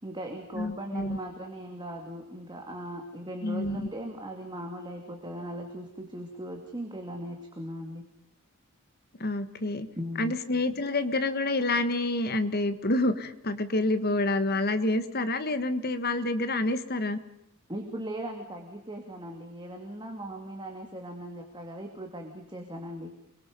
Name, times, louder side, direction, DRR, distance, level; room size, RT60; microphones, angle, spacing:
voice 1, 0.0-8.0 10.0-10.3 17.7-23.1, right 1 dB, 20° right, 2 dB, 2.7 m, -39 dB
voice 2, 0.5-1.2 3.4-3.9 9.2-9.9 10.2-17.2, left 2 dB, 45° left, 10 dB, 1.6 m, -28 dB
29.0 x 22.5 x 5.4 m, 0.79 s
head